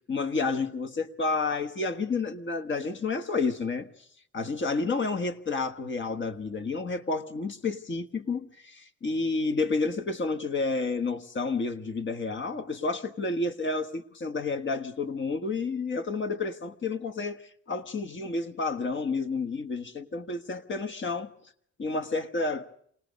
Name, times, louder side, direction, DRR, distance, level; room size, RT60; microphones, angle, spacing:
voice 1, 0.1-3.9 4.3-21.3 21.8-22.7, left 3 dB, 40° left, 1.4 m, -30 dB
27.0 x 18.5 x 5.3 m
cardioid pair, 90°, 30 cm